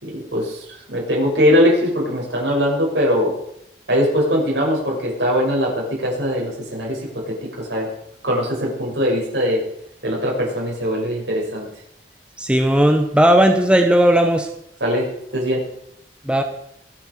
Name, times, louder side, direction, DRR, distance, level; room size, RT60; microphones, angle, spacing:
voice 1, 0.0-3.3 3.9-7.9 8.2-9.6 10.0-11.7 14.8-15.1 15.3-15.6, equal, 85° right, -2 dB, 6.6 m, -21 dB
voice 2, 12.4-14.5 16.3-16.4, right 1 dB, 5° right, 5 dB, 1.1 m, -15 dB
24.0 x 9.0 x 4.9 m, 0.75 s
head